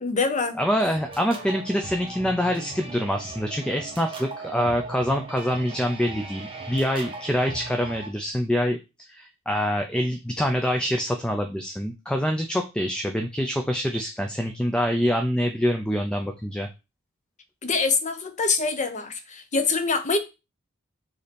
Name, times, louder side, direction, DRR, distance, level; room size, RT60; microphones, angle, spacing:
voice 1, 0.0-0.6 17.6-20.2, left 4 dB, 35° left, 0.8 m, -24 dB
voice 2, 0.6-8.8 9.1-16.7, equal, 5° left, 0.5 m, -25 dB
sound 1, 0.9-8.1, right 2 dB, 25° right, 1.2 m, -38 dB
6.6 x 2.9 x 5.2 m
head